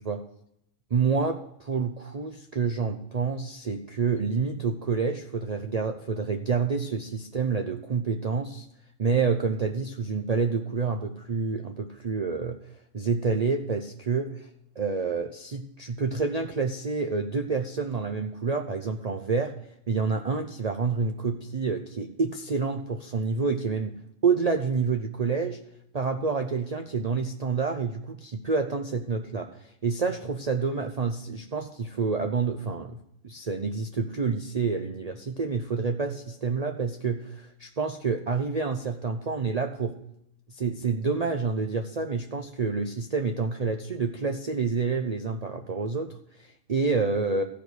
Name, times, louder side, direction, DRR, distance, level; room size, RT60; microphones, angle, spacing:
voice 1, 0.9-8.7 9.0-12.6 12.9-14.3 14.8-19.5 19.9-24.0 24.2-25.6 25.9-40.0 40.5-47.4, right 4 dB, 40° right, 5 dB, 0.6 m, -28 dB
15.0 x 5.2 x 6.2 m, 0.78 s
omnidirectional pair, 1.4 m